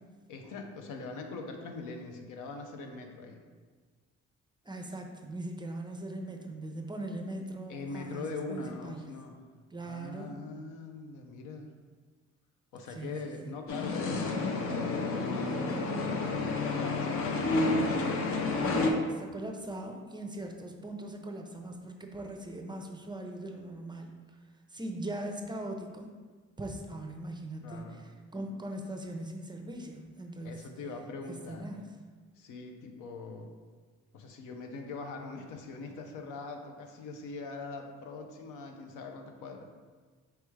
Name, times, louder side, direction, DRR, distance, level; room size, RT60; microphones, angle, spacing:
voice 1, 0.3-3.4 7.7-9.4 9.8-11.7 12.7-17.8 27.6-28.0 30.4-31.7 32.4-33.5 34.1-39.6, left 3 dB, 90° left, 4 dB, 0.6 m, -42 dB
voice 2, 4.6-9.1 9.7-10.3 12.9-13.5 18.7-24.1 24.7-26.1 26.6-30.6 31.3-31.8, right 1 dB, 15° right, 3 dB, 0.5 m, -40 dB
sound 1, 13.7-18.9, left 3 dB, 50° left, 0.6 m, -30 dB
4.5 x 3.4 x 3.2 m, 1.4 s
cardioid pair, 90°, 30 cm